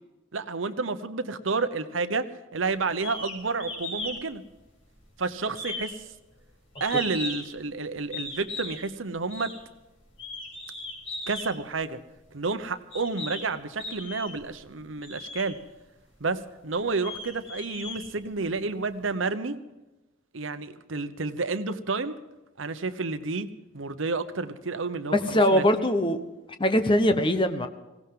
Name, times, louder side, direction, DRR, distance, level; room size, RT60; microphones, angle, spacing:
voice 1, 0.3-4.4 5.2-6.0 6.8-9.5 11.3-12.0 12.3-15.6 16.2-19.6 20.3-22.1 22.6-25.6, right 4 dB, 80° right, 11 dB, 1.0 m, -30 dB
sound 1, 3.0-3.3 3.6-4.2 4.5-5.1 5.5-7.6 8.1-8.8 9.3-9.5 10.1-11.5 12.3-12.4 12.9-13.4 13.8-14.5 15.0-15.5 16.1-16.2 16.7-18.6, left 2 dB, 80° left, 6.2 m, -37 dB
voice 2, 25.3-26.2 26.6-27.7, equal, 25° left, 7 dB, 1.0 m, -21 dB
19.5 x 17.0 x 3.8 m, 1.0 s
head